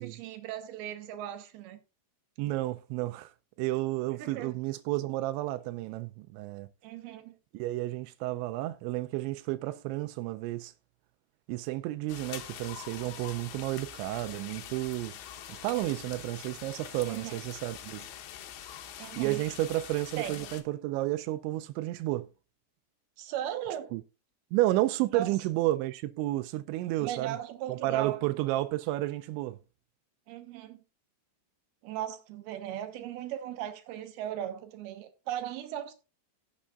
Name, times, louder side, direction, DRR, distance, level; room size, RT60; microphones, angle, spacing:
voice 1, 0.0-1.8 4.2-4.5 6.8-7.3 17.1-17.4 19.0-19.4 20.2-20.5 23.2-23.9 25.1-25.3 27.0-28.2 30.3-30.8 31.8-35.9, right 11 dB, 70° right, 2.8 m, -37 dB
voice 2, 2.4-3.3 3.6-6.7 7.5-10.7 11.5-15.2 15.5-18.1 19.2-22.3 23.9-24.0 24.5-27.4 27.7-29.6, right 17 dB, 90° right, 2.9 m, -31 dB
sound 1, 12.1-20.6, left 10 dB, 75° left, 3.2 m, -44 dB
17.0 x 7.4 x 2.4 m
omnidirectional pair, 5.1 m